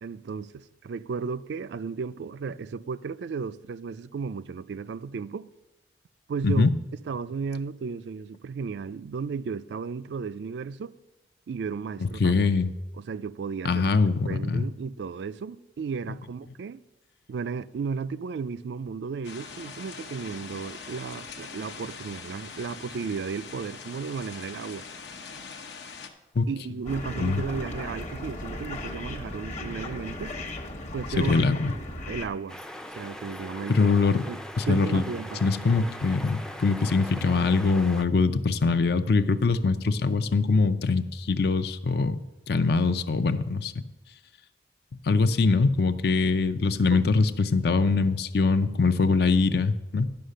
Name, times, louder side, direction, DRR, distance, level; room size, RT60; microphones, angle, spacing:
voice 1, 0.0-5.5 6.3-6.7 7.1-10.9 11.5-12.4 12.9-13.9 14.2-16.8 17.3-24.8 26.5-30.4 30.9-31.4 32.1-32.6 32.9-33.9 34.3-35.4 35.7-35.9 46.9-47.0, right 5 dB, 70° right, 0.3 m, -34 dB
voice 2, 12.0-12.7 13.6-14.7 26.3-26.5 27.2-27.4 31.2-31.7 33.7-34.2 34.6-35.0 35.4-42.2 42.5-43.7 44.9-50.2, left 4 dB, 60° left, 0.5 m, -23 dB
sound 1, 19.2-26.1, left 5 dB, 75° left, 1.0 m, -42 dB
sound 2, 26.9-32.3, left 1 dB, 40° left, 1.1 m, -36 dB
sound 3, 32.5-38.0, equal, 5° left, 0.4 m, -40 dB
11.5 x 5.7 x 6.5 m
head